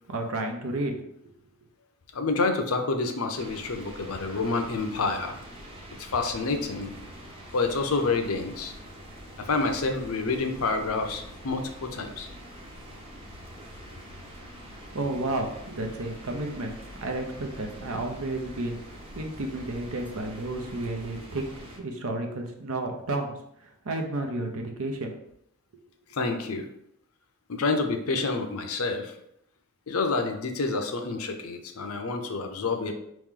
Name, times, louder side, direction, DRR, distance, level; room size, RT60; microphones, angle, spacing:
voice 1, 0.1-1.3 14.7-16.7 17.0-18.8 19.1-21.4 21.8-25.2 25.7-25.8, right 2 dB, 75° right, 4 dB, 0.8 m, -32 dB
voice 2, 2.1-5.4 6.0-6.9 7.5-8.7 9.4-12.3 26.1-26.7 27.5-29.1 29.9-32.9, left 3 dB, 80° left, 5 dB, 0.7 m, -28 dB
sound 1, 3.3-21.8, equal, 25° right, 0.8 m, -45 dB
4.6 x 3.1 x 3.7 m, 0.75 s
head